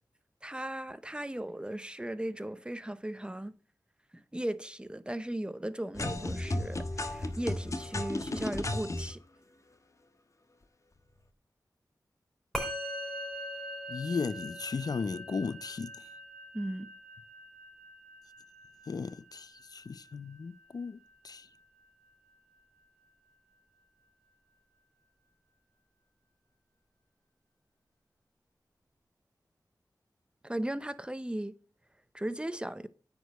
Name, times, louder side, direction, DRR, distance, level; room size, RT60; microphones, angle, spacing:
voice 1, 0.4-3.5 4.1-9.2 16.5-16.9 30.4-31.5 32.1-32.9, right 1 dB, 15° right, 0.7 m, -37 dB
sound 1, 5.9-9.1, left 2 dB, 45° left, 1.2 m, -34 dB
Musical instrument, 12.5-22.1, equal, 5° left, 4.2 m, -42 dB
voice 2, 13.9-15.9 18.9-21.0 21.2-21.5, left 5 dB, 65° left, 0.5 m, -35 dB
9.3 x 5.0 x 7.4 m
wide cardioid pair, 65°, 7 cm